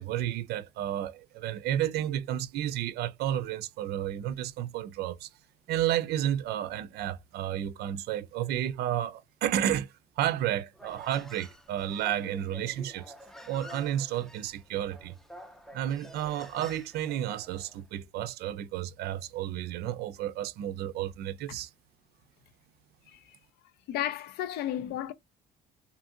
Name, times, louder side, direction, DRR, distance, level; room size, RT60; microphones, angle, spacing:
voice 1, 0.0-5.3 5.7-9.9 10.2-13.1 13.5-15.1 15.7-21.7, right 11 dB, 70° right, 0.4 m, -31 dB
Human voice, 10.7-17.8, equal, ahead, 0.4 m, -49 dB
voice 2, 23.9-25.1, left 12 dB, 75° left, 0.4 m, -32 dB
2.7 x 2.5 x 2.6 m
cardioid pair, 110°, 17 cm